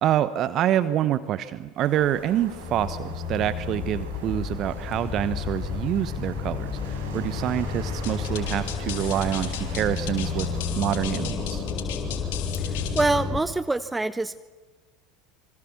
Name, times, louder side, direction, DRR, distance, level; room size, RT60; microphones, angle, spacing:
voice 1, 0.0-10.5 10.8-11.6, right 11 dB, 45° right, 14 dB, 1.0 m, -26 dB
sound 1, 1.8-10.6, right 4 dB, 75° right, 6.0 m, -44 dB
sound 2, 2.0-13.4, left 5 dB, 35° left, 3.6 m, -31 dB
sound 3, 8.0-13.2, left 11 dB, 70° left, 3.6 m, -37 dB
voice 2, 12.7-14.4, right 2 dB, 10° right, 15 dB, 0.8 m, -25 dB
26.5 x 26.0 x 7.2 m, 1.3 s
hypercardioid pair, 75°, 0 cm